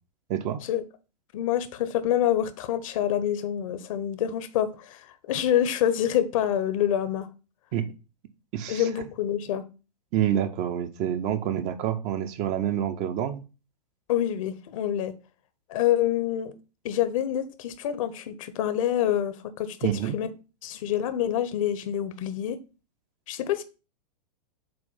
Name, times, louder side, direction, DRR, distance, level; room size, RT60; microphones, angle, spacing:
voice 1, 0.3-0.6 7.7-7.9 8.5-8.8 10.1-13.4 19.8-20.2, right 10 dB, 35° right, 0.7 m, -27 dB
voice 2, 1.3-7.3 8.7-9.6 14.1-15.1 15.7-16.5 16.8-20.3 20.6-22.6 23.3-23.6, left 11 dB, 50° left, 0.8 m, -26 dB
7.7 x 2.6 x 5.4 m
figure-of-eight pair, 105°, 21 cm